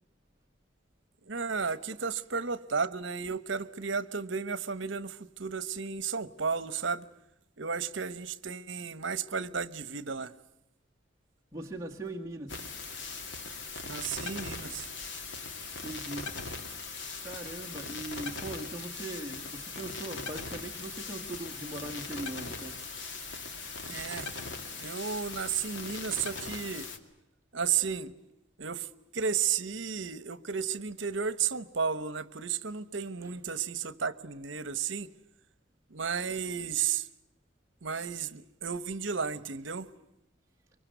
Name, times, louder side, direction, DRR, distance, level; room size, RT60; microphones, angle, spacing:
voice 1, 1.2-7.1 7.6-10.3 13.8-14.9 23.9-24.3 24.8-26.9 27.5-28.1 28.6-28.9 29.1-35.1 35.9-37.1 37.8-39.9, right 6 dB, 70° right, 1.1 m, -33 dB
voice 2, 11.5-12.5 15.8-16.2 17.2-22.7, right 1 dB, 15° right, 1.8 m, -40 dB
sound 1, 12.5-27.0, left 4 dB, 65° left, 2.3 m, -40 dB
24.5 x 24.0 x 9.2 m
head